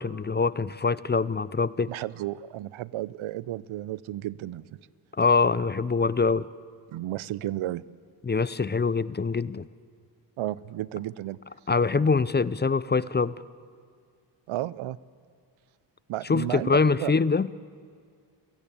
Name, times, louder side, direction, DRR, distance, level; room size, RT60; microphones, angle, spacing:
voice 1, 0.0-1.9 5.2-6.5 8.2-9.6 11.7-13.3 16.3-17.5, left 4 dB, 20° left, 18 dB, 0.6 m, -24 dB
voice 2, 1.9-4.6 6.9-7.8 10.4-11.4 14.5-15.0 16.1-17.1, right 14 dB, 75° right, 21 dB, 0.7 m, -33 dB
29.5 x 17.5 x 8.8 m, 2.1 s
cardioid pair, 65°, 48 cm